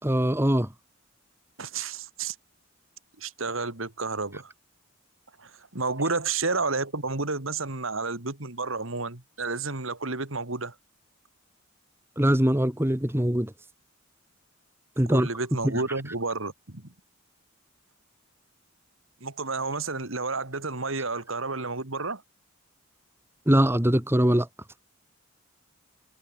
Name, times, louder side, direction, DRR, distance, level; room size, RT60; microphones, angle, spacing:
voice 1, 0.0-0.7 12.2-13.5 15.0-15.3 15.6-15.8 23.4-24.5, equal, 10° right, 1.8 m, -22 dB
voice 2, 1.6-2.3 3.2-4.5 5.4-10.7 15.1-16.9 19.2-22.2, right 3 dB, 75° right, 2.7 m, -31 dB
head